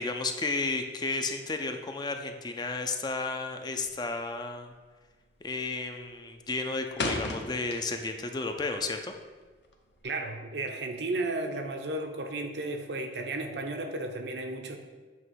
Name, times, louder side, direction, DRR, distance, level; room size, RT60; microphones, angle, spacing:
voice 1, 0.0-4.7 5.4-9.1, left 3 dB, 25° left, 6 dB, 0.4 m, -33 dB
sound 1, 3.8-4.2 4.4-4.8 5.1-5.6 5.9-8.2 8.6-10.0, left 2 dB, 75° left, 0.8 m, -35 dB
voice 2, 10.0-14.8, right 2 dB, 75° right, 4 dB, 0.7 m, -34 dB
7.7 x 3.0 x 5.6 m, 1.4 s
head